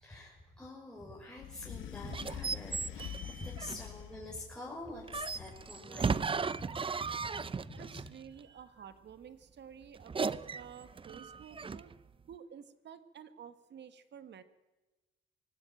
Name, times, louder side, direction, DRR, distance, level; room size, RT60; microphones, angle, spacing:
voice 1, 0.0-8.1 8.6-8.8, left 2 dB, 5° left, -5 dB, 6.4 m, -47 dB
sound 1, 1.4-4.4 4.9-5.9, left 11 dB, 80° left, 2.1 m, -46 dB
sound 2, 2.0-4.0 5.1-8.2 10.0-12.0, right 5 dB, 25° right, 0.7 m, -36 dB
voice 2, 7.7-11.9 12.3-14.4, right 8 dB, 60° right, 12 dB, 1.7 m, -51 dB
23.5 x 17.0 x 9.1 m, 1.1 s
cardioid pair, 90°, 20 cm